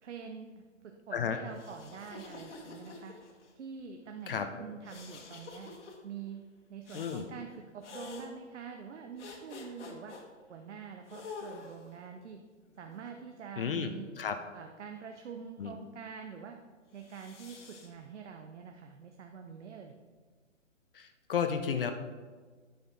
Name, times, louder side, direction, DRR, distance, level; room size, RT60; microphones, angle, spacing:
voice 1, 0.0-3.1 3.6-5.7 6.0-6.4 6.7-10.1 10.5-12.4 12.8-14.1 14.5-16.6 16.9-19.9, right 6 dB, 65° right, 4 dB, 0.9 m, -45 dB
sound 1, 1.5-3.5 4.9-6.0 6.9-7.3 7.8-8.3 9.2-10.2 11.1-12.0 12.8-13.9 16.9-17.9, left 4 dB, 60° left, 1.7 m, -48 dB
voice 2, 6.9-7.2 13.6-13.9 14.2-14.4 15.6-15.7 20.9-21.9, left 7 dB, 45° left, 8 dB, 0.7 m, -32 dB
9.4 x 6.7 x 4.0 m, 1.5 s
hypercardioid pair, 145°, 39 cm